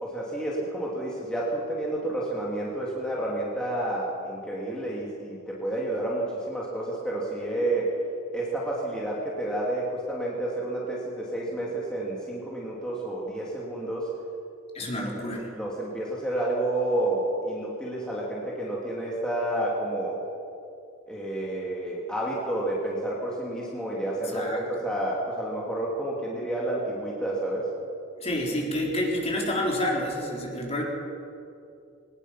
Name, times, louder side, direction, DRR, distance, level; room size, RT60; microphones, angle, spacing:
voice 1, 0.0-7.9 8.3-14.1 14.8-14.9 15.6-20.2 21.1-27.7, right 1 dB, 5° left, -6 dB, 2.9 m, -30 dB
voice 2, 14.7-15.5 24.2-24.6 28.2-30.8, left 1 dB, 30° left, -2 dB, 4.1 m, -28 dB
22.5 x 19.5 x 5.9 m, 2.6 s
head